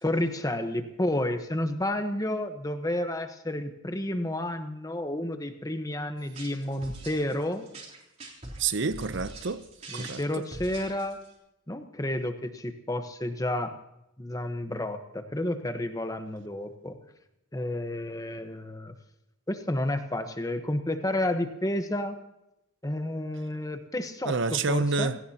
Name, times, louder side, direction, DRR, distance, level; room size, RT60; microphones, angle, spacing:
voice 1, 0.0-7.7 9.9-11.2 11.7-13.7 14.2-17.0 17.5-18.9 19.5-22.2 22.8-25.2, left 1 dB, 15° left, 1.1 m, -31 dB
sound 1, 6.2-11.3, right 2 dB, 35° right, 3.5 m, -43 dB
voice 2, 8.6-9.6 9.9-10.2 24.2-25.2, right 4 dB, 60° right, 0.7 m, -28 dB
27.5 x 17.5 x 2.9 m
head